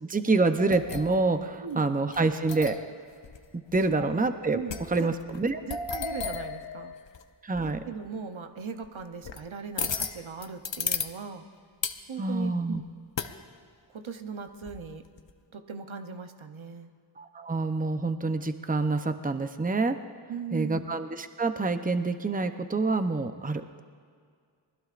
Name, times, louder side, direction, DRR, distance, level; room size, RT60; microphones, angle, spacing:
voice 1, 0.0-2.8 3.5-4.6 4.9-5.6 7.4-7.8 12.2-12.8 17.2-20.0 20.5-23.8, right 3 dB, 20° right, 9 dB, 0.7 m, -27 dB
sound 1, 0.6-1.4 2.1-2.9 3.2-3.4 3.7-4.3 4.7-7.2 7.5-7.8 8.8-9.4 9.8-11.1 11.8-12.1 13.2-13.4 14.6-15.3, left 5 dB, 70° left, 0.8 m, -34 dB
voice 2, 4.5-5.1 5.6-6.9 7.6-11.5 12.1-12.8 13.9-15.0 15.5-16.9 20.3-20.9, right 6 dB, 80° right, 6 dB, 0.9 m, -39 dB
27.0 x 20.5 x 2.5 m, 2.1 s
wide cardioid pair, 50°, 47 cm